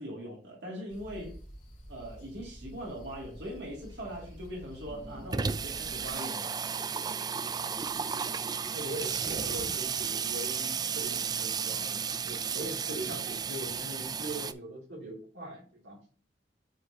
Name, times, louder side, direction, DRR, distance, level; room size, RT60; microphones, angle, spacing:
voice 1, 0.0-1.4 1.9-6.6, equal, 70° right, -3 dB, 2.7 m, -41 dB
sound 1, 0.9-6.1, equal, 45° left, 2.5 m, -49 dB
Water tap faucet / Sink (filling or washing), 3.9-4.0 4.3-4.4 4.6-14.5, right 6 dB, 20° right, 0.3 m, -33 dB
voice 2, 8.7-16.0, right 1 dB, 85° right, -2 dB, 2.8 m, -41 dB
9.0 x 4.6 x 2.8 m, 0.42 s
head